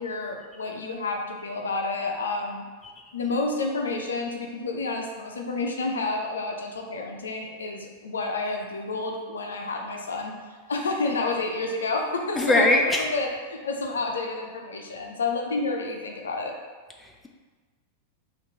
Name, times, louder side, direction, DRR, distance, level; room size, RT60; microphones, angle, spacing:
voice 1, 0.0-2.7 3.1-16.5, left 3 dB, 70° left, 2 dB, 0.5 m, -30 dB
voice 2, 12.4-13.0 17.0-17.3, left 2 dB, 5° left, 1 dB, 0.4 m, -22 dB
3.6 x 2.5 x 3.9 m, 1.4 s
figure-of-eight pair, 90°, 0 cm